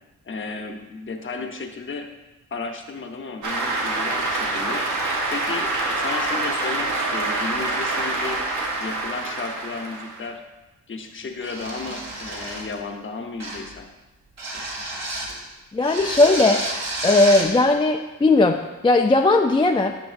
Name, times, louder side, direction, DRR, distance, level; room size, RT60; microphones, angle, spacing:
voice 1, 0.2-2.1 2.5-4.9 5.3-8.4 8.8-10.4 10.9-13.9, left 4 dB, 40° left, 4 dB, 0.9 m, -33 dB
Cheering / Applause, 3.4-10.3, right 2 dB, 85° right, 1.2 m, -26 dB
sound 1, 11.4-12.8 13.4-13.7 14.4-15.4 15.8-17.5, right 1 dB, 60° right, 1.8 m, -30 dB
voice 2, 15.7-16.6 17.0-19.9, left 2 dB, 15° left, 3 dB, 0.4 m, -18 dB
9.3 x 5.8 x 2.6 m, 1.1 s
cardioid pair, 75°, 30 cm